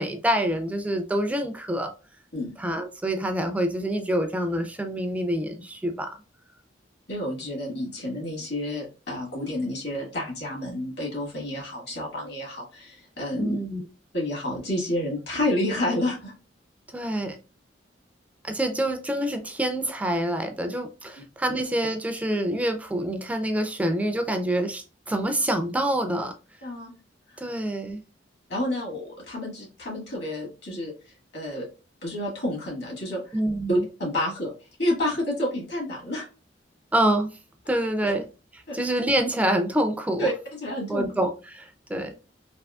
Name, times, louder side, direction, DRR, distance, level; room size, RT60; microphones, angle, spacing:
voice 1, 0.0-1.9 2.6-6.1 13.4-13.9 16.9-17.4 18.4-26.3 27.4-28.0 33.3-33.8 36.9-37.4 37.7-38.2 38.5-40.3 40.9-42.1, right 1 dB, 10° right, 0.3 m, -26 dB
voice 2, 7.1-13.6 14.1-16.3 26.6-26.9 28.5-30.9 31.3-31.7 32.0-33.2 33.7-34.5 34.8-36.2 38.7-38.9 40.2-40.3 40.6-41.1, left 1 dB, 65° left, 1.7 m, -29 dB
3.5 x 2.7 x 2.3 m
head